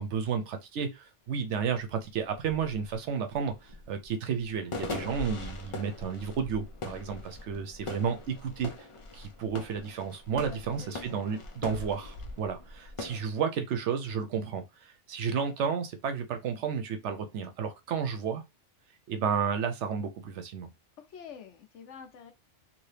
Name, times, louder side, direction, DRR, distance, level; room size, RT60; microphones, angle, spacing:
voice 1, 0.0-8.7 9.1-14.6 15.1-18.4 19.1-20.7, right 6 dB, 75° right, 1.0 m, -32 dB
sound 1, 1.3-1.4 1.7-13.2, left 2 dB, 55° left, 0.3 m, -41 dB
voice 2, 10.5-11.6 21.0-22.3, left 7 dB, 80° left, 1.1 m, -48 dB
2.8 x 2.7 x 3.3 m
omnidirectional pair, 1.2 m